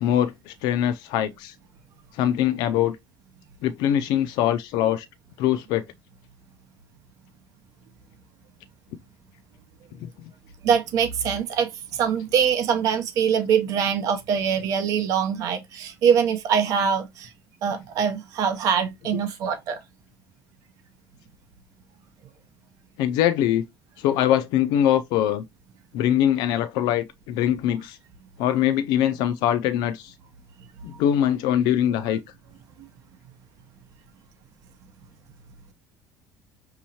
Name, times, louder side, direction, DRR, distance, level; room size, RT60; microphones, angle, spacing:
voice 1, 0.0-1.5 2.1-3.0 3.6-5.1 5.4-5.9 23.0-23.6 24.0-25.4 25.9-28.0 28.4-30.1 30.8-32.2, left 11 dB, 75° left, 0.4 m, -22 dB
voice 2, 10.6-17.3 17.6-19.8, right 7 dB, 55° right, 0.8 m, -23 dB
6.2 x 2.9 x 2.9 m
cardioid pair, 160°, 7 cm